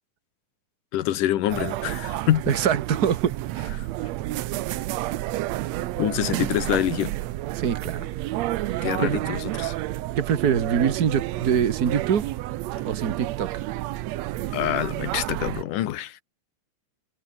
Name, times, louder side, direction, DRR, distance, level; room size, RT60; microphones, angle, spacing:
voice 1, 0.9-2.4 6.0-7.1 8.8-9.7 14.5-16.2, left 13 dB, 80° left, 2.8 m, -26 dB
sound 1, 1.5-15.6, right 16 dB, 75° right, 1.7 m, -30 dB
voice 2, 2.5-3.3 7.5-8.1 8.6-8.7 9.0-9.2 10.2-12.3 12.8-13.7, right 8 dB, 50° right, 1.2 m, -24 dB
omnidirectional pair, 3.7 m